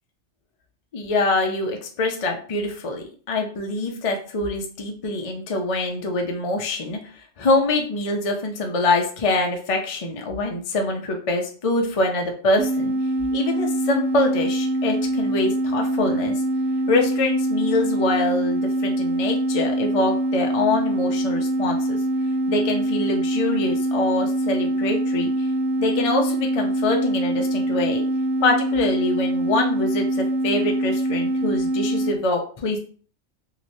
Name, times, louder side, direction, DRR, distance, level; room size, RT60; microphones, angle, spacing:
voice 1, 0.9-12.9 13.3-16.3 16.9-22.0 22.5-25.5 25.8-28.0 28.4-32.8, left 2 dB, 40° left, 2 dB, 0.5 m, -24 dB
sound 1, 12.6-32.2, right 1 dB, 85° right, 1.0 m, -24 dB
3.1 x 2.8 x 2.7 m, 0.42 s
omnidirectional pair, 1.3 m